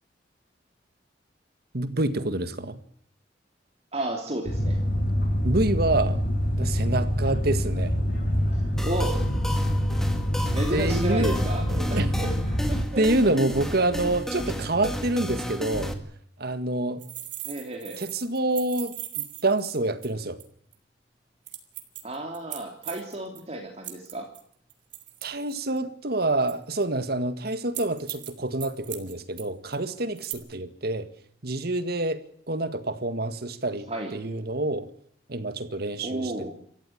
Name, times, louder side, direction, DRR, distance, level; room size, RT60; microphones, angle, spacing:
voice 1, 1.7-2.8 5.4-6.2 6.5-8.0 10.7-11.4 11.7-12.1 13.0-15.9 16.4-17.0 18.0-20.4 25.2-31.1 31.4-32.2 32.5-34.9 35.3-36.5, right 2 dB, 60° right, 11 dB, 1.8 m, -27 dB
voice 2, 3.9-4.8 8.5-9.3 10.5-13.0 14.5-14.7 17.4-18.0 22.0-24.3 33.9-34.2 36.0-36.5, right 1 dB, 35° right, 2 dB, 2.9 m, -33 dB
sound 1, 4.5-12.9, equal, 55° left, 5.2 m, -25 dB
sound 2, 8.8-15.9, equal, 5° left, 2.2 m, -33 dB
sound 3, 17.0-20.4 20.7-20.8 21.5-23.4 23.8-25.8 26.5-26.8 27.7-28.3 28.6-29.4 29.7-29.8 30.2-30.3, right 15 dB, 85° right, 3.1 m, -38 dB
27.0 x 14.5 x 8.7 m, 0.65 s
head